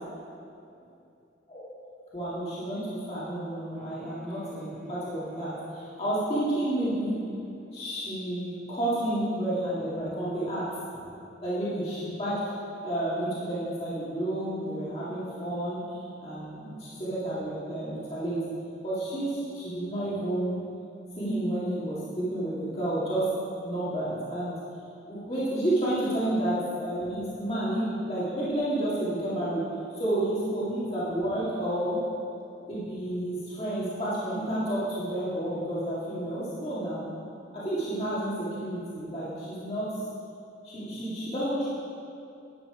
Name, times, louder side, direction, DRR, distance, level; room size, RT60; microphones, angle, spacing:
voice 1, 2.1-7.2 7.7-10.7 10.9-11.1 11.4-12.4 12.8-15.8 16.2-18.4 18.8-20.6 21.2-23.3 23.6-24.6 25.1-29.6 30.0-32.0 32.7-37.1 37.5-39.9 40.6-41.7, right 1 dB, 35° left, -10 dB, 2.2 m, -30 dB
sound 1, 3.7-9.6, left 3 dB, 5° right, 2.1 m, -50 dB
10.5 x 8.9 x 4.9 m, 2.6 s
head